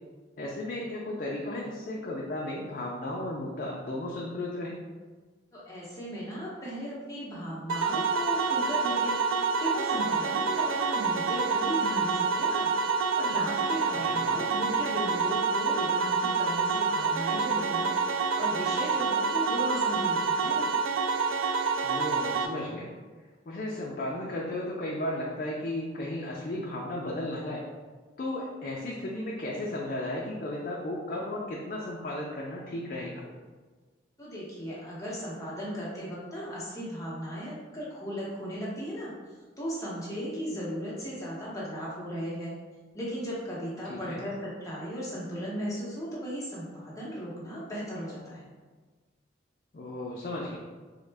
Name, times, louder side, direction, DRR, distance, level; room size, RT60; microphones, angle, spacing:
voice 1, 0.4-4.8 13.9-14.5 21.8-22.9 23.5-27.6 28.2-33.2 43.8-44.2 49.7-50.6, left 1 dB, 45° left, -3 dB, 0.4 m, -35 dB
voice 2, 5.5-9.2 9.6-12.7 13.2-20.7 34.2-39.1 39.6-42.5 42.9-48.5, equal, 15° left, -7 dB, 0.8 m, -36 dB
sound 1, 7.7-22.5, right 5 dB, 80° right, 0.3 m, -27 dB
3.6 x 2.1 x 3.3 m, 1.4 s
head